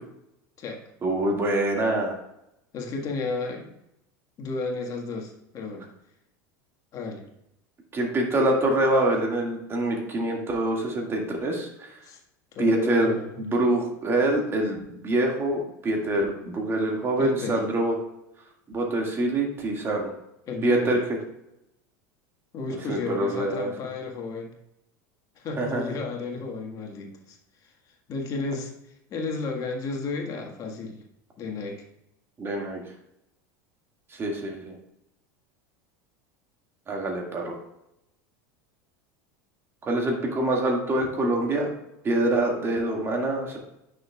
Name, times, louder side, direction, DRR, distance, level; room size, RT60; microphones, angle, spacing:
voice 1, 1.0-2.2 7.9-11.9 12.6-13.1 13.4-17.9 18.7-20.1 20.6-21.0 22.9-23.7 25.6-25.9 32.4-32.8 34.1-34.8 36.9-37.6 39.8-41.7 42.0-43.6, right 1 dB, 25° right, 0 dB, 1.9 m, -25 dB
voice 2, 2.7-3.7 4.4-5.9 6.9-7.2 12.0-12.2 12.5-13.4 17.2-17.6 20.4-21.0 22.5-24.5 25.4-27.4 27.6-27.7 28.1-28.7 29.1-31.0 31.4-31.8, left 4 dB, 40° left, 2 dB, 1.6 m, -32 dB
9.2 x 6.5 x 2.3 m, 0.83 s
supercardioid pair, 125°, 9 cm